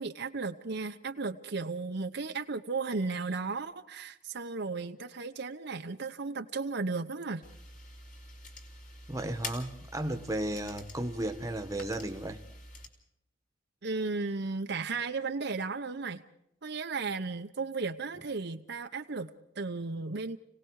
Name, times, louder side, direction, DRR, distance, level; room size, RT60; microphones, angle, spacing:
voice 1, 0.0-7.4 13.8-16.2 16.6-20.4, right 4 dB, 60° right, 0.9 m, -35 dB
sound 1, 7.4-12.9, left 2 dB, 45° left, 3.2 m, -46 dB
voice 2, 9.1-12.4, right 1 dB, 15° right, 1.4 m, -34 dB
29.5 x 18.0 x 4.8 m
head